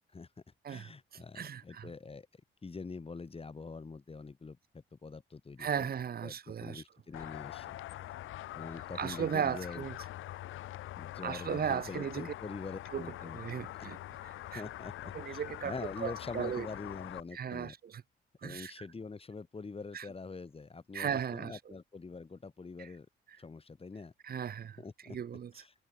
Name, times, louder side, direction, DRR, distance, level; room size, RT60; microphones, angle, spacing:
voice 1, 0.7-2.3 2.6-5.9 6.2-7.8 8.5-9.8 11.0-13.4 14.5-14.9 15.3-17.7 18.4-23.1 23.4-24.1 24.8-25.2 25.5-25.7, left 4 dB, 30° left, 7.4 m, -44 dB
voice 2, 1.4-1.9 5.6-6.8 9.0-10.0 11.2-12.3 12.9-13.1 13.3-14.0 14.5-14.6 15.1-16.7 17.3-18.0 18.4-18.7 19.9-20.1 20.9-21.6 22.8-22.9 24.2-24.8 25.1-25.5, right 8 dB, 50° right, 1.8 m, -36 dB
sound 1, 7.1-17.2, left 14 dB, 85° left, 3.1 m, -44 dB
cardioid pair, 90°, 20 cm